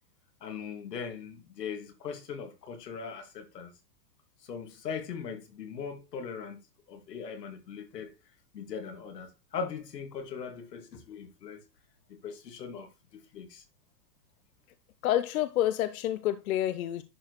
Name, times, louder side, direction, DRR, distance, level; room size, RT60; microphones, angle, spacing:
voice 1, 0.4-3.7 4.4-6.6 6.9-8.1 8.5-11.6 12.1-13.6, left 6 dB, 85° left, 2.2 m, -40 dB
voice 2, 15.0-17.0, left 12 dB, 60° left, 0.7 m, -28 dB
11.0 x 4.6 x 3.1 m
hypercardioid pair, 145°, 47 cm